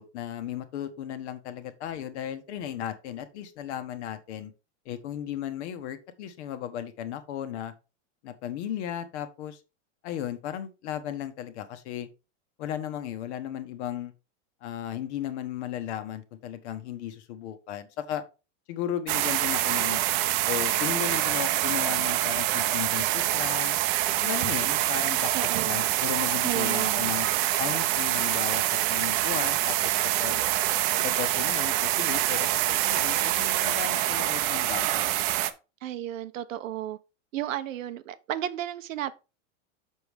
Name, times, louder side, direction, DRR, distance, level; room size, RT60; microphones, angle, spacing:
voice 1, 0.0-4.5 4.8-7.7 8.2-9.6 10.0-12.1 12.6-14.1 14.6-18.2 18.7-20.0 20.4-23.8 24.2-27.3 27.6-28.6 28.9-30.4 31.0-35.0, left 10 dB, 60° left, 1.4 m, -35 dB
sound 1, 19.1-35.5, right 14 dB, 40° right, 0.7 m, -26 dB
voice 2, 25.3-25.9 26.4-27.1 35.8-37.0 37.3-39.1, right 12 dB, 85° right, 1.0 m, -33 dB
6.8 x 6.5 x 3.5 m
supercardioid pair, 150°, 38 cm